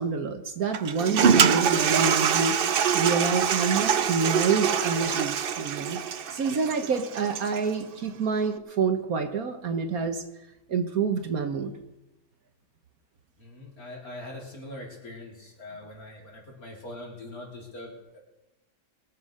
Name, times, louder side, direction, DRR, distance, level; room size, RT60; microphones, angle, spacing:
voice 1, 0.0-2.6 2.9-6.0 6.3-10.2 10.7-11.7, right 5 dB, 60° right, 7 dB, 1.5 m, -27 dB
Toilet flush, 0.7-7.7, right 7 dB, 75° right, 0.5 m, -24 dB
voice 2, 13.4-18.2, left 1 dB, 55° left, -1 dB, 4.1 m, -42 dB
22.0 x 7.4 x 6.4 m, 0.96 s
omnidirectional pair, 1.9 m